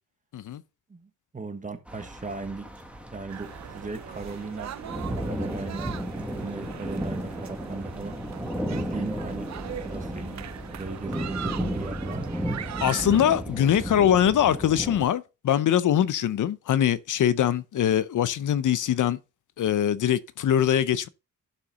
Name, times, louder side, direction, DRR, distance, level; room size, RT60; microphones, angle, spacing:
voice 1, 0.9-2.7 3.1-8.1 8.7-9.5 9.8-12.3, right 3 dB, 25° right, 1.4 m, -37 dB
sound 1, 1.9-15.1, equal, 5° right, 1.6 m, -34 dB
sound 2, 3.3-13.3, right 10 dB, 60° right, 0.6 m, -40 dB
voice 2, 12.8-19.2 19.6-21.1, left 10 dB, 75° left, 0.6 m, -23 dB
11.5 x 5.8 x 3.7 m
wide cardioid pair, 125°, 32 cm